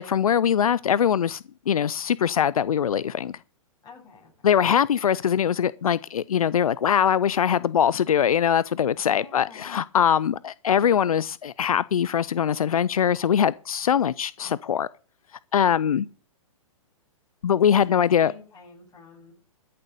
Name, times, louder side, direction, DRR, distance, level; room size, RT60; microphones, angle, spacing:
voice 1, 0.0-3.4 4.4-14.9 15.5-16.0 17.4-18.3, left 8 dB, 85° left, 0.5 m, -22 dB
voice 2, 3.8-4.5 9.1-9.8 17.9-19.3, left 4 dB, 20° left, 7.7 m, -49 dB
14.0 x 6.8 x 6.6 m
hypercardioid pair, 125°, 18 cm